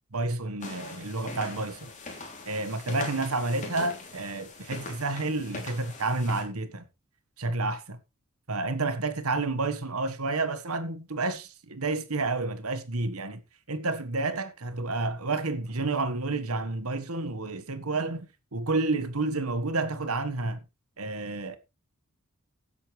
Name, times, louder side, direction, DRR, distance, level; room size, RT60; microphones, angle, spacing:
voice 1, 0.1-1.9 2.5-6.8 7.4-8.0 8.5-13.4 13.7-18.3 18.5-20.6 21.0-21.6, right 3 dB, 85° right, 1.6 m, -30 dB
sound 1, 0.6-6.4, left 3 dB, 35° left, 3.2 m, -42 dB
16.0 x 8.4 x 3.3 m
head